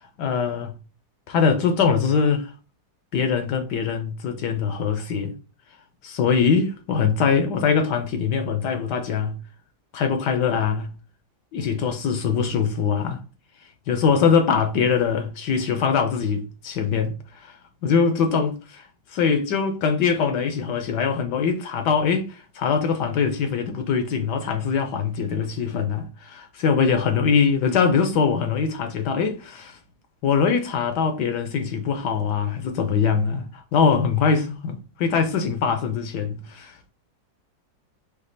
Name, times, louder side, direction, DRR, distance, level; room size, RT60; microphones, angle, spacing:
voice 1, 0.2-0.8 1.3-2.5 3.1-5.4 6.0-9.4 9.9-10.9 11.5-13.2 13.9-17.6 17.8-29.8 30.2-36.9, left 6 dB, 70° left, 1.2 m, -22 dB
5.2 x 2.3 x 3.9 m
omnidirectional pair, 2.1 m